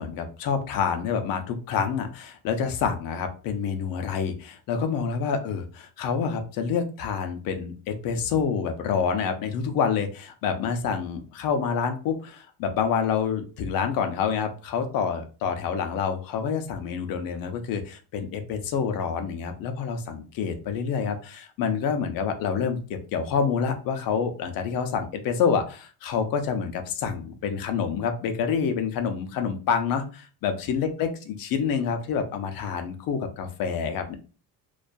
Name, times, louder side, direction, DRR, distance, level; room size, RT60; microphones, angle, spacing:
voice 1, 0.0-5.6 6.0-22.8 23.1-31.1 31.4-34.2, left 6 dB, 60° left, 7 dB, 0.6 m, -27 dB
2.5 x 2.3 x 2.2 m, 0.36 s
cardioid pair, 160°, 40 cm